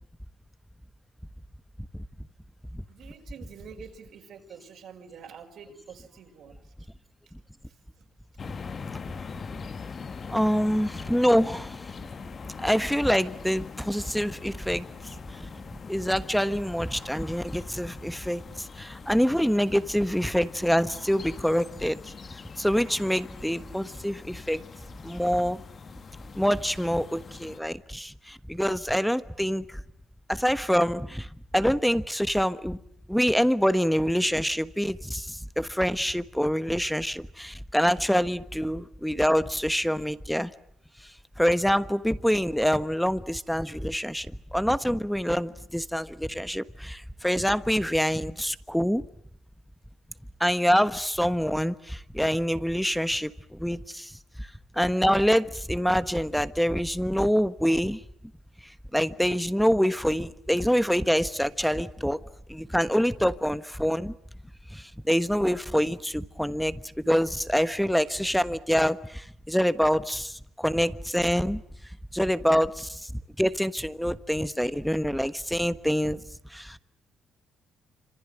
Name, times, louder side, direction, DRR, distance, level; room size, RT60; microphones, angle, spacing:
voice 1, 2.9-6.7 7.7-8.1, right 6 dB, 70° right, 3 dB, 5.3 m, -47 dB
sound 1, 8.4-27.6, left 5 dB, 45° left, 1.5 m, -42 dB
voice 2, 10.3-11.8 12.6-14.9 15.3-15.5 15.9-22.1 22.6-24.6 25.0-25.6 26.3-29.8 30.3-31.3 31.5-32.8 33.1-40.5 41.4-49.0 50.4-54.5 54.7-58.0 58.9-62.2 62.5-64.1 64.7-66.8 67.1-71.6 72.1-73.1 73.4-76.2 76.5-76.8, equal, ahead, 13 dB, 1.3 m, -26 dB
28.0 x 26.5 x 7.7 m, 0.70 s
cardioid pair, 90°, 0 cm